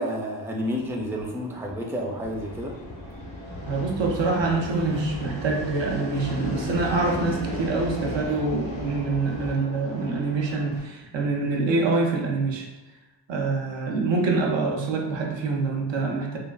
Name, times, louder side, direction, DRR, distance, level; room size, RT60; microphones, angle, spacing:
voice 1, 0.0-2.7, equal, 5° right, 0 dB, 0.4 m, -30 dB
Fixed-wing aircraft airplane, 0.6-10.8, equal, 85° left, 1.0 m, -36 dB
sound 1, 2.3-9.6, left 1 dB, 45° left, 0.5 m, -38 dB
voice 2, 3.7-12.7 13.3-16.4, right 3 dB, 80° right, 1 dB, 0.6 m, -25 dB
3.3 x 2.3 x 2.3 m, 1.1 s
wide cardioid pair, 70°, 44 cm